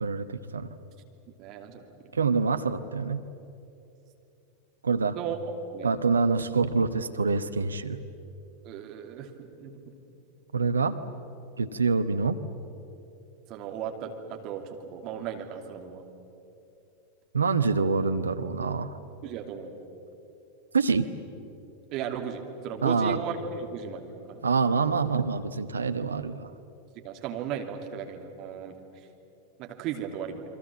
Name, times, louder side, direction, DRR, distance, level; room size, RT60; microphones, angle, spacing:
voice 1, 0.0-0.7 2.1-3.2 4.8-5.2 5.8-8.0 10.5-11.0 11.6-12.4 17.3-19.0 20.7-21.1 22.8-23.2 24.4-26.5, right 4 dB, 75° right, 10 dB, 1.0 m, -26 dB
voice 2, 1.4-1.8 5.1-5.4 5.6-5.9 8.6-9.7 13.5-16.1 19.2-19.7 21.9-24.4 26.9-29.1 29.6-30.4, right 8 dB, 40° right, 3 dB, 2.8 m, -36 dB
29.0 x 23.5 x 7.5 m, 2.8 s
figure-of-eight pair, 90°, 0 cm